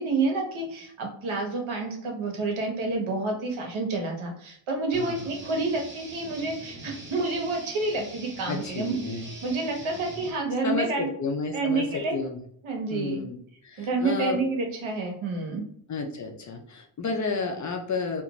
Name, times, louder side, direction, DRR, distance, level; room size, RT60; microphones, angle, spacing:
voice 1, 0.0-9.0 9.4-11.1 11.5-12.2 12.6-13.2 13.8-15.7, right 3 dB, 70° right, 2 dB, 1.0 m, -29 dB
voice 2, 4.9-5.3 8.5-9.3 10.6-12.4 12.9-13.4 13.6-14.4 15.9-18.2, left 4 dB, 40° left, 2 dB, 0.5 m, -31 dB
sound 1, 4.9-10.3, right 1 dB, 25° right, 0.8 m, -43 dB
2.5 x 2.3 x 2.9 m, 0.64 s
cardioid pair, 115°, 49 cm